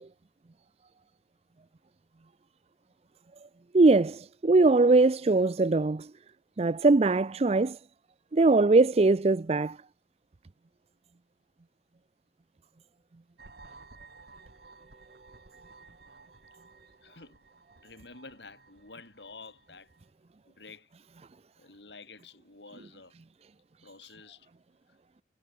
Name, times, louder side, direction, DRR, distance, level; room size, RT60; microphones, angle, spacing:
voice 1, 3.7-6.1 6.6-7.8 8.3-9.8, right 3 dB, 35° right, 0.5 m, -21 dB
sound 1, 13.4-20.1, right 3 dB, 60° right, 2.5 m, -55 dB
voice 2, 17.0-17.4 17.8-19.9 20.5-20.9 21.6-23.1 23.8-24.5, left 4 dB, 75° left, 3.6 m, -50 dB
head